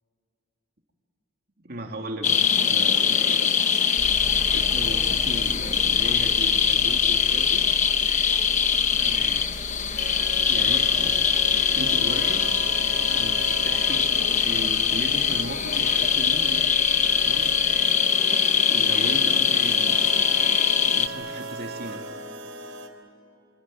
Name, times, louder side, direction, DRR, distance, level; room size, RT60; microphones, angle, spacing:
voice 1, 1.6-3.6 4.5-7.7 8.8-9.5 10.5-11.3 11.7-12.5 13.1-16.7 17.2-17.5 18.6-22.0, right 1 dB, 50° right, 2 dB, 2.8 m, -37 dB
sound 1, 2.2-21.1, left 7 dB, 35° left, 1.1 m, -22 dB
sound 2, 3.9-17.8, equal, 30° right, 2.7 m, -40 dB
sound 3, 10.0-22.9, right 2 dB, 70° right, 3.9 m, -38 dB
26.0 x 25.5 x 7.8 m, 2.7 s
head